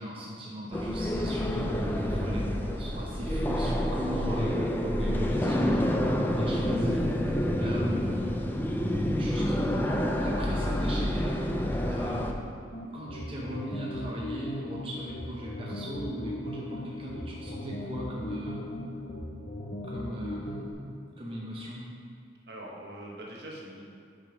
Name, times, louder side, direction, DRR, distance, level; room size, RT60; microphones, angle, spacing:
voice 1, 0.0-8.1 9.0-11.4 11.8-12.5 12.9-18.7 19.8-20.9 21.2-21.8, equal, 30° right, -5 dB, 0.8 m, -38 dB
sound 1, 0.7-12.3, equal, 10° left, 0.4 m, -28 dB
voice 2, 4.9-5.3 22.5-23.9, right 1 dB, 60° right, -2 dB, 1.2 m, -43 dB
sound 2, 12.7-20.7, left 1 dB, 50° left, 0.9 m, -38 dB
6.4 x 5.3 x 4.9 m, 2.4 s
head